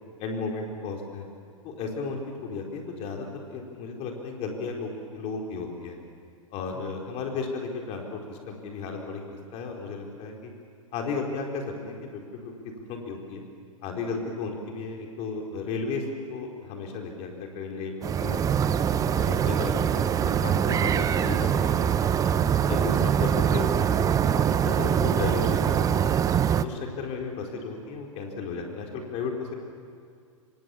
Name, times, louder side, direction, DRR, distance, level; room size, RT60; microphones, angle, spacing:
voice 1, 0.2-1.3 1.6-6.0 6.5-9.2 9.5-10.5 10.9-13.4 13.8-16.0 16.3-17.9 18.2-18.5 19.0-22.1 22.7-26.1 26.6-29.5, left 4 dB, 35° left, 1 dB, 4.3 m, -34 dB
sound 1, 18.0-26.6, right 8 dB, 20° right, 0.8 m, -23 dB
26.5 x 25.5 x 7.1 m, 2.2 s
figure-of-eight pair, 105°, 17 cm